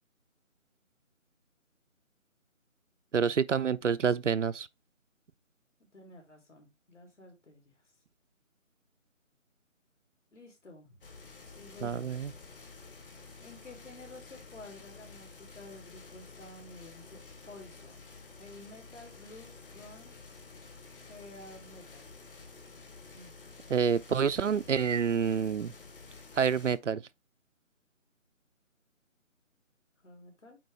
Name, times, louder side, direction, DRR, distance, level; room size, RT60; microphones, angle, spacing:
voice 1, 3.1-4.7 11.8-12.3 23.7-25.7 26.4-27.0, right 7 dB, 65° right, 0.5 m, -28 dB
voice 2, 5.8-7.7 10.3-11.0 11.4-12.1 13.4-17.2 17.4-18.0 18.3-20.2 20.9-22.1 23.1-23.3 30.0-30.6, left 2 dB, 60° left, 3.2 m, -51 dB
sound 1, 11.0-26.8, left 4 dB, 40° left, 1.5 m, -51 dB
8.5 x 3.9 x 3.3 m
figure-of-eight pair, 160°, 40 cm